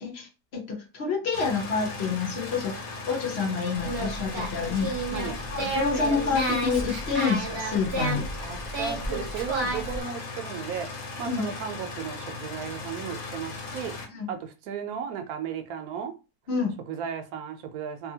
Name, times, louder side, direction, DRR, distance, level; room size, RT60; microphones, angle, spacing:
voice 1, 0.0-8.3 11.2-11.4 14.1-14.3 16.5-16.8, left 5 dB, 50° left, 0.9 m, -28 dB
sound 1, 1.3-14.1, left 3 dB, 75° left, 1.2 m, -38 dB
Singing, 3.8-10.0, right 1 dB, 25° right, 0.5 m, -31 dB
voice 2, 5.1-5.4 8.4-13.9 14.3-16.1 16.9-18.1, right 7 dB, 75° right, 1.0 m, -35 dB
2.7 x 2.6 x 2.7 m
omnidirectional pair, 1.6 m